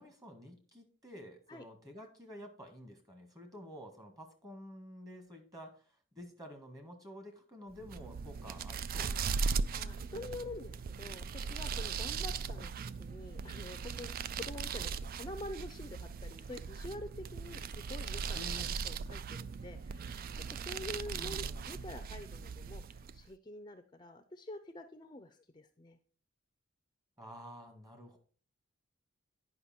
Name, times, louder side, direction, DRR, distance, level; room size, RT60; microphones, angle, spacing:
voice 1, 0.0-9.5 12.4-12.7 18.3-18.7 21.1-21.9 27.2-28.2, equal, 20° right, 4 dB, 1.6 m, -50 dB
sound 1, 7.8-23.3, right 5 dB, 45° right, 0.3 m, -39 dB
voice 2, 9.7-12.7 13.0-26.0, left 1 dB, 20° left, 8 dB, 0.5 m, -47 dB
9.5 x 5.5 x 4.3 m, 0.42 s
head